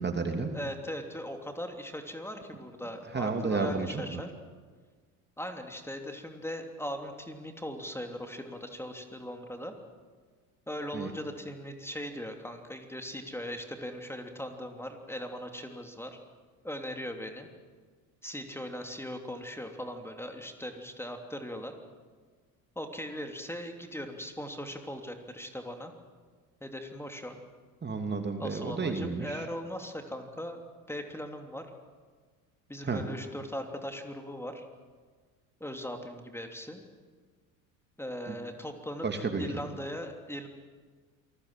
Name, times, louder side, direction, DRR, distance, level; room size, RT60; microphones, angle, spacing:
voice 1, 0.0-0.5 3.1-4.2 10.9-11.1 27.8-29.4 32.8-33.0 38.3-38.4 39.0-39.5, right 4 dB, 25° right, 5 dB, 2.9 m, -31 dB
voice 2, 0.5-4.3 5.4-9.7 10.7-16.2 16.6-17.5 18.2-21.7 22.7-25.9 26.6-27.4 28.4-31.7 32.7-34.7 35.6-36.8 38.0-40.5, equal, 5° left, 4 dB, 3.1 m, -39 dB
27.5 x 20.5 x 7.6 m, 1.5 s
hypercardioid pair, 65°, 41 cm